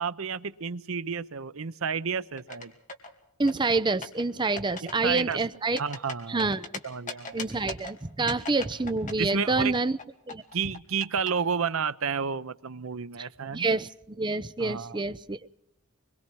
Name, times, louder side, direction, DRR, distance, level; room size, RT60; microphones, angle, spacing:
voice 1, 0.0-2.7 4.8-5.4 5.8-6.5 6.8-7.4 9.2-9.7 10.5-13.7 14.6-15.0, right 6 dB, 70° right, 0.8 m, -31 dB
sound 1, 2.4-3.1 3.5-4.2 4.6-4.9 5.2-6.8 7.1-7.9 8.3-11.3, left 3 dB, 35° left, 2.5 m, -38 dB
voice 2, 3.4-5.8 6.3-6.7 7.3-10.0 10.3-10.4 13.2-15.4, right 3 dB, 20° right, 0.7 m, -27 dB
26.5 x 22.0 x 4.6 m
head